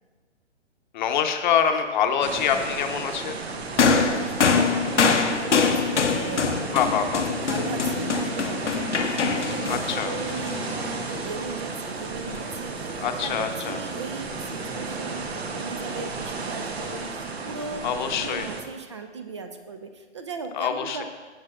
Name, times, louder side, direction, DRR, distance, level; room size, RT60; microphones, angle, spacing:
voice 1, 0.9-3.4 6.7-7.2 9.7-10.1 13.0-13.8 17.8-18.5 20.5-21.0, left 8 dB, 40° left, 6 dB, 0.8 m, -25 dB
sound 1, 2.2-18.6, right 4 dB, 60° right, 1.2 m, -33 dB
sound 2, 3.8-11.3 12.3-12.4, left 5 dB, 80° left, 0.9 m, -24 dB
voice 2, 3.8-17.8 18.2-21.0, right 4 dB, 25° right, 7 dB, 0.4 m, -37 dB
14.5 x 7.2 x 2.4 m, 1.4 s
figure-of-eight pair, 125°, 35 cm